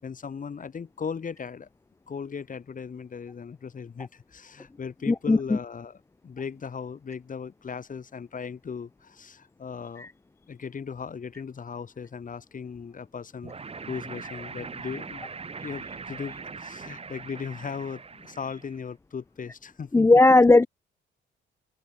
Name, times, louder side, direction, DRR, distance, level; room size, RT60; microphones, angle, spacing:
voice 1, 0.0-1.7 2.1-10.1 10.5-13.6 13.9-15.3 15.6-20.1, left 6 dB, 40° left, 5.4 m, -37 dB
voice 2, 5.1-5.4 19.9-20.7, left 2 dB, 15° left, 0.4 m, -16 dB
sound 1, 13.4-18.9, right 4 dB, 30° right, 2.1 m, -41 dB
cardioid pair, 90°, 20 cm